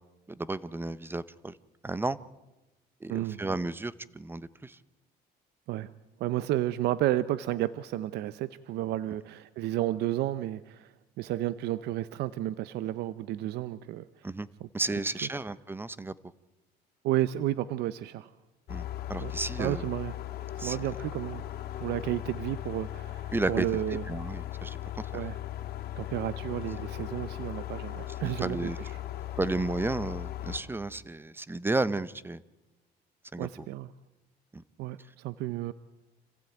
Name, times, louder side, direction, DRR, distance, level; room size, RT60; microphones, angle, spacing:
voice 1, 0.3-1.6 1.8-2.2 3.0-4.8 14.2-14.5 14.7-16.1 18.7-19.8 20.6-20.8 23.3-24.8 28.4-28.8 29.4-32.4 33.3-33.5 34.5-34.6, right 2 dB, 15° right, 17 dB, 0.8 m, -32 dB
voice 2, 3.1-3.4 5.7-5.9 6.2-14.1 14.6-14.7 17.0-18.3 19.2-19.3 19.6-20.1 20.6-21.4 21.8-24.0 25.1-25.4 26.0-28.9 33.4-33.9 34.8-35.7, right 14 dB, 85° right, 15 dB, 0.7 m, -32 dB
sound 1, 18.7-30.6, left 13 dB, 65° left, 3.1 m, -38 dB
26.5 x 15.5 x 9.2 m, 1.1 s
cardioid pair, 110°, 17 cm